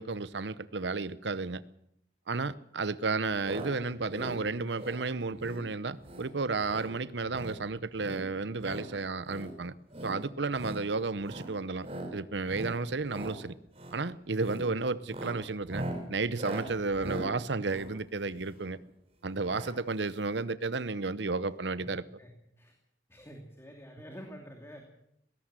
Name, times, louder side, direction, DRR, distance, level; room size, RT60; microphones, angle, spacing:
voice 1, 0.0-1.6 2.3-9.7 10.0-13.5 13.9-18.8 19.2-22.0, right 3 dB, 70° right, 16 dB, 0.8 m, -32 dB
sound 1, 3.4-3.7 4.0-4.4 4.7-5.0 5.4-5.6 6.0-6.3 6.6-6.9 7.2-7.6 8.0-8.9 9.2-9.5 9.9-10.2 10.5-10.8 11.2-11.5 11.8-12.1 12.4-12.8 13.0-13.4 13.7-14.0 14.4-14.7 15.0-18.7 19.5-19.7 20.0-20.1 20.3-20.4, right 1 dB, 35° right, 5.4 m, -41 dB
voice 2, 22.2-22.7 23.1-24.8, equal, 15° left, 2 dB, 2.7 m, -48 dB
20.0 x 17.5 x 7.6 m, 0.75 s
head